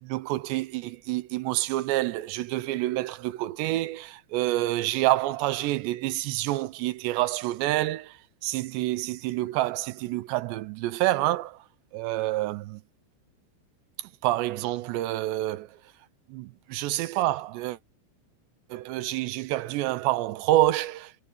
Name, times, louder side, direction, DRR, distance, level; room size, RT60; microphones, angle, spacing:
voice 1, 0.0-11.7 11.9-12.8 14.2-15.8 16.3-17.8 18.7-21.2, right 16 dB, 80° right, 2.8 m, -28 dB
omnidirectional pair, 5.4 m